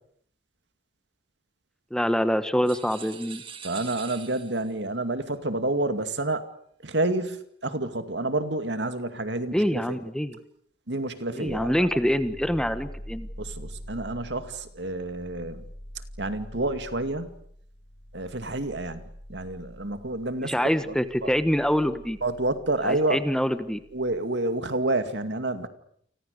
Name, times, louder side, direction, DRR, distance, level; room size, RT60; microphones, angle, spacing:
voice 1, 1.9-3.4 9.5-10.4 11.3-13.3 20.4-22.2 22.8-23.8, equal, 5° left, 11 dB, 1.2 m, -25 dB
sound 1, 2.6-4.8, right 7 dB, 30° right, 2.2 m, -43 dB
voice 2, 3.6-6.4 6.8-10.0 10.9-11.9 13.4-15.6 16.2-17.3 18.1-19.0 19.3-20.5 21.2-21.3 22.2-23.2 23.9-25.7, right 2 dB, 70° right, 9 dB, 2.3 m, -29 dB
sound 2, 11.5-24.2, equal, 80° left, 2.8 m, -45 dB
30.0 x 24.5 x 6.7 m, 0.67 s
head